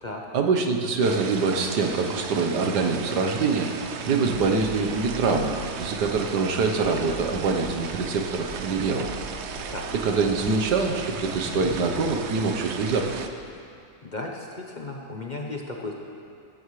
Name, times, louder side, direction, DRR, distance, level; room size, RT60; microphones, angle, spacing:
voice 1, 0.3-3.7 4.0-9.1 10.0-13.1, right 4 dB, 90° right, 3 dB, 1.6 m, -24 dB
sound 1, 1.0-13.3, right 6 dB, 60° right, 0.8 m, -36 dB
sound 2, 4.3-13.1, left 1 dB, 85° left, 2.5 m, -42 dB
voice 2, 14.0-15.9, left 2 dB, 35° left, 0 dB, 0.8 m, -35 dB
14.5 x 14.5 x 3.2 m, 2.4 s
omnidirectional pair, 1.7 m